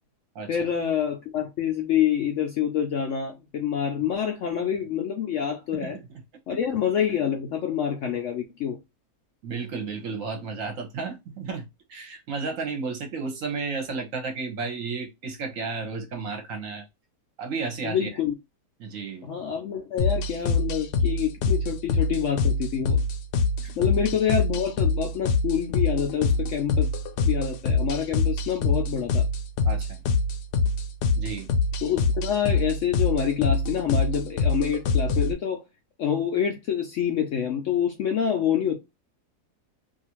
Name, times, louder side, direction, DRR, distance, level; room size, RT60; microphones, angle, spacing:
voice 1, 0.5-6.0 6.5-8.8 17.8-18.4 19.2-23.0 23.8-26.9 27.2-29.2 31.8-35.6 36.0-38.8, left 8 dB, 70° left, 0.7 m, -27 dB
voice 2, 9.4-16.9 17.4-18.2 18.8-19.3 23.6-23.9 29.6-30.0 31.2-31.5, right 4 dB, 65° right, 1.0 m, -33 dB
sound 1, 20.0-35.3, left 3 dB, 85° left, 1.1 m, -25 dB
2.7 x 2.4 x 2.9 m
omnidirectional pair, 1.7 m